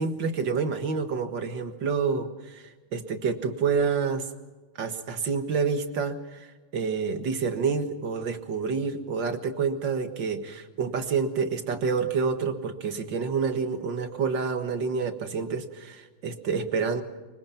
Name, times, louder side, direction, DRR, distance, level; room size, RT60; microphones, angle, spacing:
voice 1, 0.0-4.3 4.8-17.0, right 5 dB, 60° right, 8 dB, 2.3 m, -28 dB
24.5 x 24.5 x 5.8 m, 1.3 s
omnidirectional pair, 2.3 m